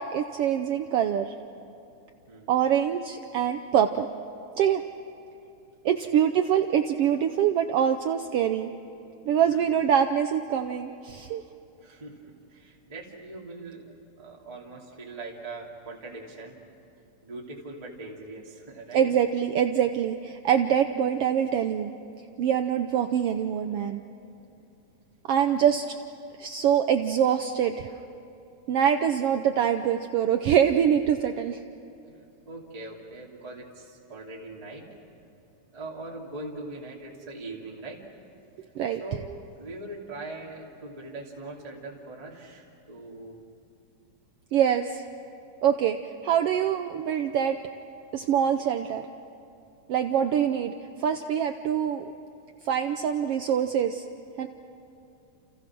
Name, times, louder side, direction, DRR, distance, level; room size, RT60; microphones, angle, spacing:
voice 1, 0.0-1.3 2.5-4.1 4.6-4.8 5.8-8.7 9.2-11.4 18.9-21.9 22.4-24.0 25.3-25.9 26.4-27.9 28.7-31.6 38.7-39.0 44.5-45.0 45.6-46.0 46.2-47.6 48.1-49.0 49.9-50.7 51.0-52.0 52.6-54.0 54.4-54.5, right 9 dB, 80° right, 7 dB, 1.3 m, -24 dB
voice 2, 2.3-2.6 6.0-6.2 9.5-9.6 11.8-16.6 17.2-19.1 32.1-34.9 35.7-38.0 39.0-39.3 39.5-43.4, right 2 dB, 10° right, -3 dB, 2.5 m, -41 dB
30.0 x 29.5 x 6.2 m, 2.8 s
omnidirectional pair, 3.6 m